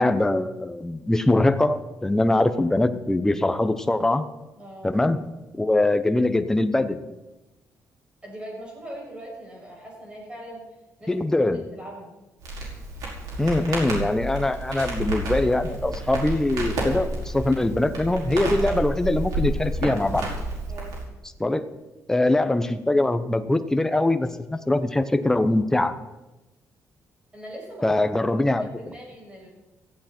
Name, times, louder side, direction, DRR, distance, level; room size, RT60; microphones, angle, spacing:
voice 1, 0.0-4.3 4.8-5.2 5.6-7.0 11.1-11.6 13.4-20.3 21.4-21.6 22.1-25.9 27.8-28.7, left 2 dB, 10° left, 9 dB, 0.8 m, -22 dB
voice 2, 4.6-4.9 8.2-10.7 11.0-12.1 20.7-21.0 27.3-28.1 28.8-29.5, right 1 dB, 20° right, -3 dB, 6.8 m, -40 dB
Crackle, 12.4-21.0, right 1 dB, 85° right, 5.2 m, -30 dB
17.0 x 15.0 x 4.4 m, 1.1 s
cardioid pair, 155°, 6 cm